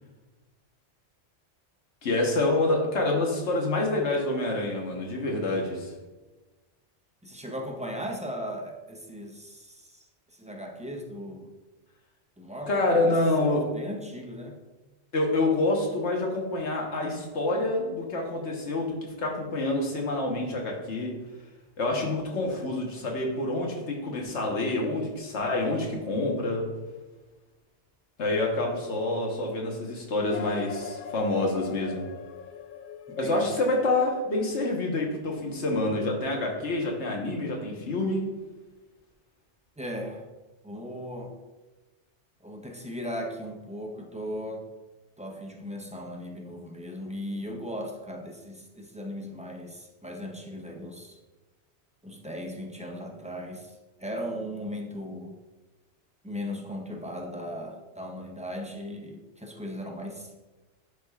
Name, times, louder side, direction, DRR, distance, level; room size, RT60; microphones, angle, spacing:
voice 1, 2.0-5.9 12.7-13.7 15.1-21.1 21.8-26.7 28.2-32.0 33.2-38.2, left 2 dB, 80° left, 0 dB, 1.5 m, -27 dB
voice 2, 7.2-11.5 12.4-14.6 33.1-33.5 39.8-40.3 40.6-41.4 42.4-44.7 45.2-51.2 52.0-55.4 56.2-60.3, equal, 10° right, 2 dB, 0.4 m, -37 dB
sound 1, 30.3-35.1, left 7 dB, 60° left, 0.6 m, -42 dB
11.0 x 4.9 x 2.4 m, 1.2 s
omnidirectional pair, 1.2 m